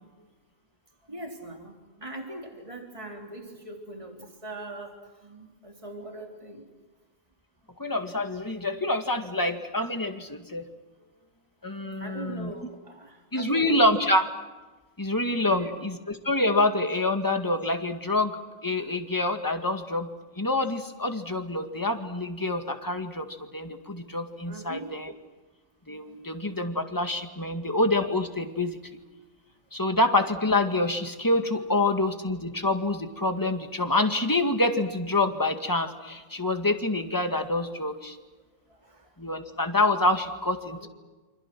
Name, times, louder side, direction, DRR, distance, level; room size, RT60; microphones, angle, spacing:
voice 1, 1.1-5.0 5.2-6.6 11.8-13.8 15.4-15.8 24.4-24.9 26.0-26.2 38.7-39.1 40.8-40.9, right 2 dB, 25° right, 2 dB, 3.6 m, -41 dB
voice 2, 7.8-10.6 11.6-12.5 13.3-14.3 15.0-18.3 18.6-20.1 20.4-23.3 23.5-25.1 25.9-28.8 29.7-38.2 39.2-40.9, left 2 dB, 15° left, 5 dB, 2.0 m, -26 dB
28.5 x 26.0 x 6.1 m, 1.2 s
omnidirectional pair, 1.3 m